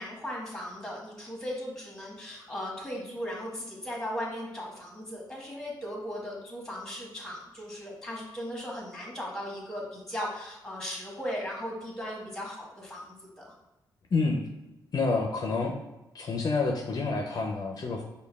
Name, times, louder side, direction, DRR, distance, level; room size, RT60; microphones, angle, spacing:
voice 1, 0.0-13.5, equal, 5° left, -3 dB, 1.2 m, -37 dB
voice 2, 14.1-14.4 14.9-15.7 16.1-18.0, left 3 dB, 50° left, 1 dB, 0.4 m, -28 dB
5.1 x 2.2 x 2.3 m, 0.99 s
cardioid pair, 75°, 8 cm